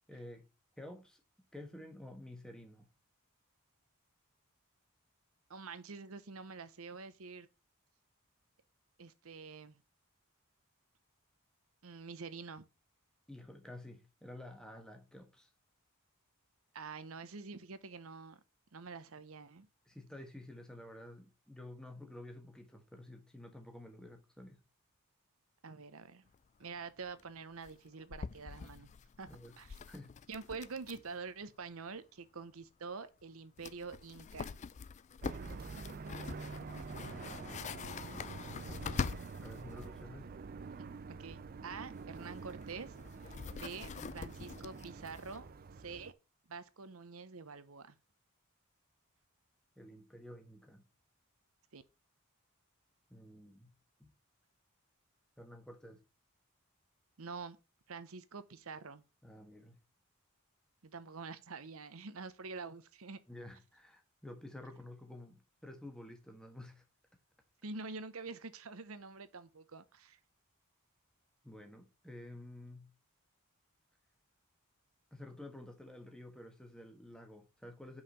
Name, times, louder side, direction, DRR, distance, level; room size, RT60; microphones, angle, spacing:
voice 1, 0.1-0.5 0.8-1.2 1.5-2.9 13.3-15.5 19.9-24.6 29.3-29.6 29.8-30.1 36.9-37.8 39.4-40.3 49.8-50.8 53.1-53.7 54.0-54.1 55.4-56.0 59.2-59.8 63.3-66.8 71.4-72.9 75.1-78.0, left 1 dB, 5° left, 1.3 m, -51 dB
voice 2, 5.5-7.5 9.0-9.8 11.8-12.7 16.7-18.4 18.7-19.7 25.6-26.2 26.6-28.9 29.2-29.3 29.6-29.8 30.3-34.6 41.1-42.9 43.5-45.5 45.8-46.2 46.5-48.0 51.7-51.8 57.2-57.6 57.9-59.0 60.8-63.2 67.6-70.2, right 4 dB, 70° right, 0.9 m, -46 dB
sound 1, 26.3-26.4 26.6-26.7 27.0-27.2 27.6-31.2 31.4-31.5 33.2-33.3 33.6-40.0 41.8-45.5, left 5 dB, 35° left, 0.3 m, -45 dB
sound 2, 35.2-46.1, right 4 dB, 40° right, 0.4 m, -47 dB
5.7 x 4.8 x 6.6 m
head